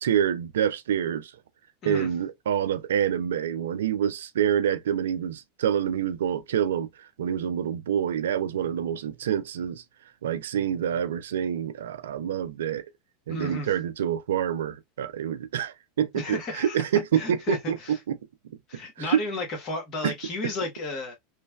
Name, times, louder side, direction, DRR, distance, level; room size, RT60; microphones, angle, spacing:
voice 1, 0.0-1.3 1.8-9.8 10.2-12.9 13.3-18.2 19.0-19.2 20.0-20.1 20.4-20.5, right 9 dB, 80° right, 0.3 m, -27 dB
voice 2, 13.3-13.7 16.1-16.8 17.1-18.0 18.7-21.1, left 2 dB, 45° left, 1.3 m, -33 dB
3.1 x 2.1 x 2.3 m
hypercardioid pair, 100°, 0 cm